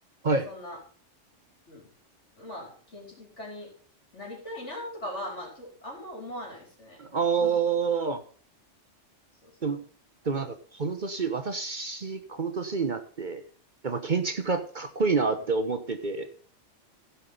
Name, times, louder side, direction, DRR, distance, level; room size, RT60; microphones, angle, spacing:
voice 1, 0.4-0.8 1.7-1.9 2.4-3.7 4.1-7.6 9.4-9.7 15.3-15.4, left 1 dB, 70° left, 0 dB, 4.9 m, -40 dB
voice 2, 7.0-8.2 9.6-9.8 10.2-13.4 13.8-16.3, right 5 dB, 45° right, 9 dB, 1.0 m, -28 dB
16.0 x 5.8 x 5.5 m, 0.42 s
omnidirectional pair, 1.3 m